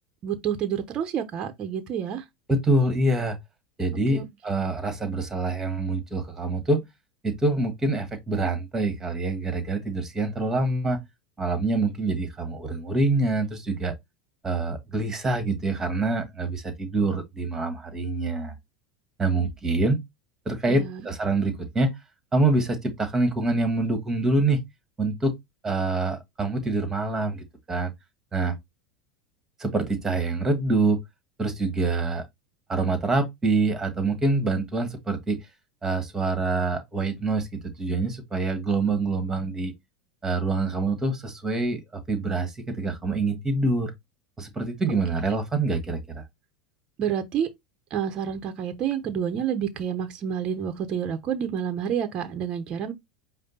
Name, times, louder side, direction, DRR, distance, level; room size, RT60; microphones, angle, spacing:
voice 1, 0.2-2.2 4.1-4.2 20.7-21.0 47.0-47.5 47.9-52.9, right 8 dB, 40° right, 0.9 m, -29 dB
voice 2, 2.5-3.4 3.8-6.8 7.2-11.0 11.4-13.9 14.4-18.5 19.2-20.0 20.5-22.0 22.3-24.6 25.0-25.4 25.6-27.9 28.3-28.6 29.6-31.0 31.4-32.2 32.7-35.4 35.8-39.7 40.2-43.9 44.4-46.2, right 2 dB, 20° right, 1.8 m, -25 dB
5.1 x 2.2 x 4.1 m
hypercardioid pair, 100°, 2 cm